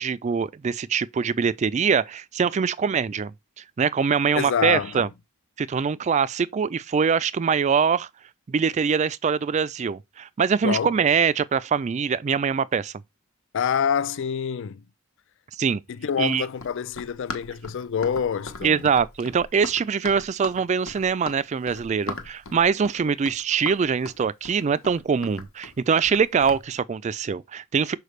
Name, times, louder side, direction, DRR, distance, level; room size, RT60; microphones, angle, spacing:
voice 1, 0.0-5.1 5.6-8.1 8.5-12.9 15.5-15.8 16.2-16.4 18.6-28.0, right 6 dB, 35° right, 0.3 m, -23 dB
voice 2, 4.4-5.1 10.6-10.9 13.5-14.8 15.9-18.9, left 7 dB, 60° left, 0.4 m, -26 dB
Run, 16.1-26.7, left 3 dB, 75° left, 1.1 m, -39 dB
6.6 x 4.8 x 3.2 m
head